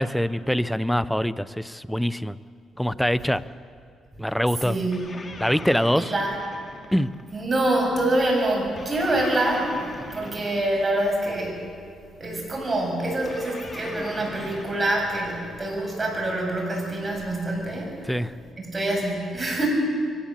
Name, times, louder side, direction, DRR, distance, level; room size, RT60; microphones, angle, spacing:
voice 1, 0.0-2.4 2.8-3.4 4.2-4.8 5.4-6.1 6.9-7.1 18.1-18.3, equal, 5° left, 16 dB, 0.6 m, -24 dB
voice 2, 4.6-5.1 6.0-6.4 7.3-9.7 10.1-11.6 12.2-18.0 18.6-19.7, right 1 dB, 25° right, 0 dB, 7.2 m, -25 dB
sound 1, 4.9-7.5 8.8-11.3 13.3-15.8, left 2 dB, 30° left, 2.4 m, -40 dB
23.5 x 17.5 x 7.5 m, 2.3 s
cardioid pair, 90°, 0 cm